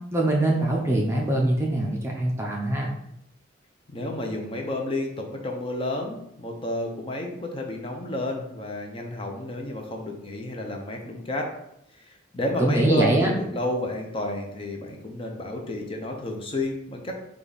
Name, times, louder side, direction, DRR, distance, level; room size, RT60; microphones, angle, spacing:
voice 1, 0.1-3.0 12.6-13.3, right 1 dB, 15° right, -1 dB, 0.5 m, -23 dB
voice 2, 3.9-11.5 11.9-17.2, left 1 dB, 30° left, 2 dB, 0.7 m, -31 dB
5.2 x 2.4 x 4.0 m, 0.78 s
head